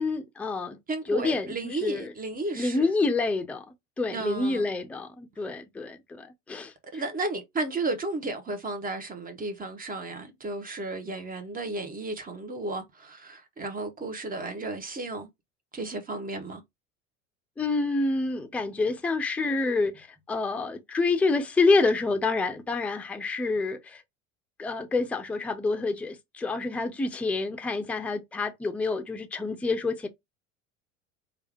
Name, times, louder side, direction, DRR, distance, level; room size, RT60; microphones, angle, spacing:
voice 1, 0.0-0.8 1.1-2.1 2.5-3.6 4.0-6.7 17.6-24.0 24.6-30.1, left 3 dB, 5° left, 0.5 m, -27 dB
voice 2, 0.9-2.9 4.1-4.6 6.9-15.3 15.7-16.6, right 2 dB, 20° right, 0.9 m, -33 dB
3.4 x 2.4 x 3.4 m
figure-of-eight pair, 75°, 41 cm